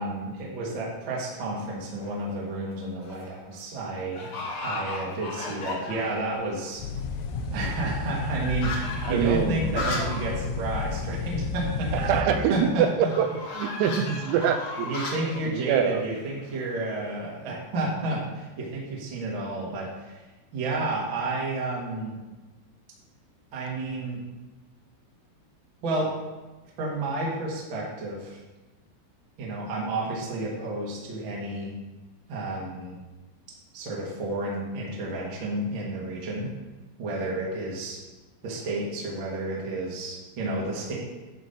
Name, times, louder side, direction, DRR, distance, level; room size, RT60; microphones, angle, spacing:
voice 1, 0.0-4.3 4.6-6.8 7.5-13.1 14.8-20.2 20.5-22.1 23.5-24.2 25.8-26.1 26.8-28.4 29.4-31.7 32.3-32.9 33.7-36.5 37.0-38.0 38.4-41.0, right 2 dB, 70° right, -4 dB, 1.1 m, -31 dB
sound 1, 1.8-2.3 2.8-3.3 3.5-3.6 4.1-6.3 6.7-6.8 7.0-10.3 10.7-10.8 11.1-11.2 13.1-16.8, left 3 dB, 65° left, 1.6 m, -36 dB
sound 2, 6.8-12.2, left 4 dB, 85° left, 3.3 m, -31 dB
voice 2, 9.0-10.1 11.9-13.3 13.6-15.0 15.5-16.0, right 8 dB, 85° right, 8 dB, 3.4 m, -25 dB
10.5 x 4.4 x 5.4 m, 1.1 s
omnidirectional pair, 5.9 m